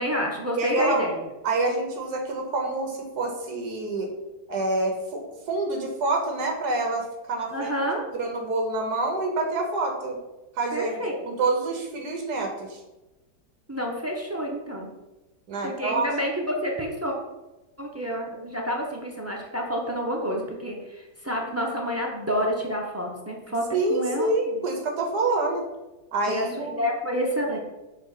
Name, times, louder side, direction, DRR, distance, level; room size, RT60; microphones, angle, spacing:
voice 1, 0.0-1.3 7.5-8.0 10.7-11.1 13.7-14.9 15.6-17.2 17.8-23.6 23.9-24.6 26.3-27.6, equal, 20° right, -1 dB, 0.4 m, -29 dB
voice 2, 0.6-1.0 1.4-4.1 4.5-5.2 5.5-7.7 8.1-10.2 10.6-12.8 15.5-16.1 23.7-25.6 26.1-26.8, right 2 dB, 65° right, 2 dB, 1.6 m, -27 dB
5.2 x 3.7 x 5.7 m, 1.0 s
omnidirectional pair, 1.8 m